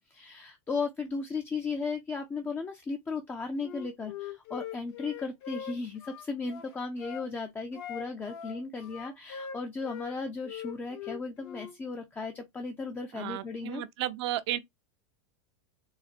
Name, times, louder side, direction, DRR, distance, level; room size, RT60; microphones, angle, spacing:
voice 1, 0.0-13.8, left 4 dB, 15° left, 0.4 m, -36 dB
Wind instrument woodwind instrument, 3.6-7.3 7.7-10.2 10.4-11.8, left 9 dB, 65° left, 0.9 m, -42 dB
voice 2, 13.1-14.6, right 13 dB, 65° right, 0.6 m, -33 dB
3.9 x 2.1 x 2.4 m
supercardioid pair, 130°, 15 cm